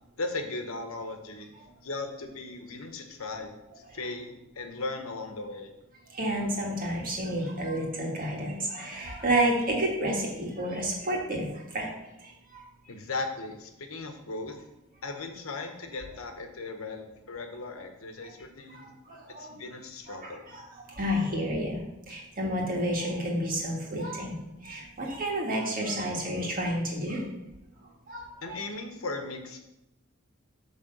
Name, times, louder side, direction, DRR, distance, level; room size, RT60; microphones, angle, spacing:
voice 1, 0.2-1.5 1.8-3.6 3.9-5.7 12.9-14.6 15.0-18.9 19.3-20.4 28.4-29.6, left 3 dB, 80° left, 5 dB, 1.0 m, -37 dB
voice 2, 6.1-11.5 11.7-11.9 12.5-12.6 18.7-19.5 20.1-20.6 20.9-21.8 22.1-24.4 24.6-27.2 28.1-28.3, right 1 dB, 40° right, -2 dB, 1.9 m, -30 dB
8.6 x 3.5 x 6.5 m, 0.92 s
head